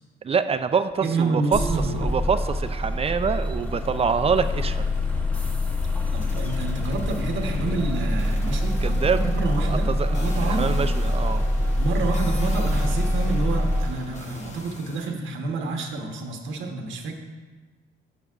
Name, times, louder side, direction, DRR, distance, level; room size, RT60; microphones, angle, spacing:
voice 1, 0.2-1.6 1.9-4.9 8.8-9.2 9.7-10.2 10.5-11.4, right 6 dB, 30° right, 11 dB, 0.4 m, -25 dB
voice 2, 1.0-1.9 6.1-10.8 11.8-17.1, right 3 dB, 75° right, 2 dB, 1.1 m, -28 dB
sound 1, 1.5-13.9, left 1 dB, 5° left, 0.9 m, -25 dB
sound 2, 4.9-5.2 6.2-15.1, left 2 dB, 35° left, 1.1 m, -42 dB
10.0 x 6.8 x 2.4 m, 1.3 s
cardioid pair, 90°, 20 cm